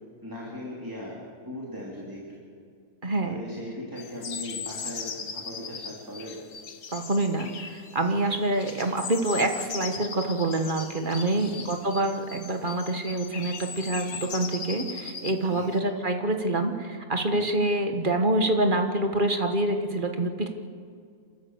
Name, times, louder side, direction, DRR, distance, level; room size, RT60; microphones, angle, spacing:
voice 1, 0.2-2.4 3.2-6.4 11.3-11.8 15.5-15.7 17.3-17.5, left 1 dB, 15° right, -4 dB, 3.1 m, -39 dB
voice 2, 3.0-3.4 6.9-20.5, right 2 dB, 35° right, 5 dB, 1.5 m, -26 dB
sound 1, 4.0-15.8, left 6 dB, 80° left, 1.7 m, -39 dB
27.5 x 13.0 x 8.0 m, 2.3 s
omnidirectional pair, 1.5 m